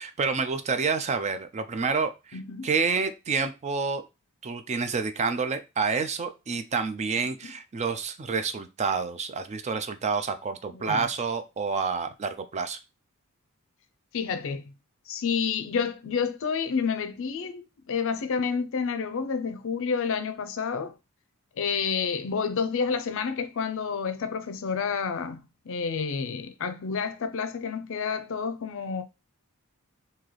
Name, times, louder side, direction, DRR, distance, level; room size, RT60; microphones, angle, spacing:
voice 1, 0.0-2.4 2.6-4.0 4.4-12.8, right 5 dB, 30° right, 0.4 m, -28 dB
voice 2, 2.3-2.7 7.2-7.5 10.8-11.0 14.1-14.7 15.1-20.9 21.6-29.0, left 6 dB, 60° left, 0.5 m, -29 dB
3.1 x 2.7 x 3.9 m
head